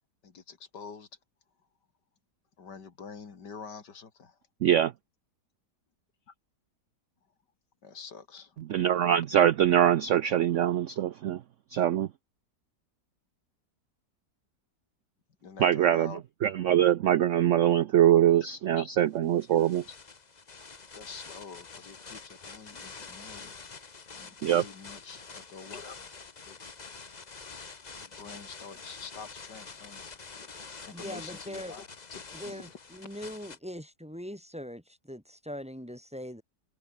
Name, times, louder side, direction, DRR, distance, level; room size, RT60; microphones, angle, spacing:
voice 1, 0.2-1.1 2.6-4.4 6.3-6.4 7.8-8.5 15.4-16.2 18.8-18.9 19.9-20.0 20.9-23.5 24.1-26.1 26.4-26.6 28.0-31.9 32.1-32.8 33.0-33.1, left 5 dB, 80° left, 2.9 m, -46 dB
voice 2, 4.6-4.9 8.7-11.4 11.7-12.1 15.6-16.1 16.4-19.8 24.4-24.6, right 11 dB, 65° right, 0.7 m, -23 dB
sound 1, 19.3-33.6, left 4 dB, 30° left, 1.1 m, -46 dB
voice 3, 30.9-31.7 32.3-36.4, equal, 5° right, 2.6 m, -41 dB
omnidirectional pair, 1.8 m